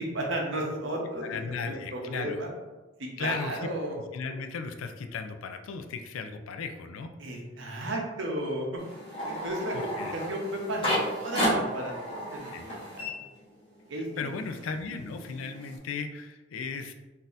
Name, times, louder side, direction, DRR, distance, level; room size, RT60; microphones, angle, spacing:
voice 1, 0.0-2.5 3.0-4.0 7.2-8.8 9.2-13.1 13.9-14.3, right 1 dB, 70° right, 0 dB, 0.7 m, -34 dB
voice 2, 1.2-2.4 3.2-3.7 4.1-7.1 9.3-9.5 9.7-10.1 12.5-12.7 14.0-16.9, left 5 dB, 85° left, 7 dB, 0.4 m, -36 dB
sound 1, 8.8-13.9 14.2-15.8, equal, 25° left, 1.1 m, -33 dB
3.9 x 2.7 x 2.5 m, 1.2 s
head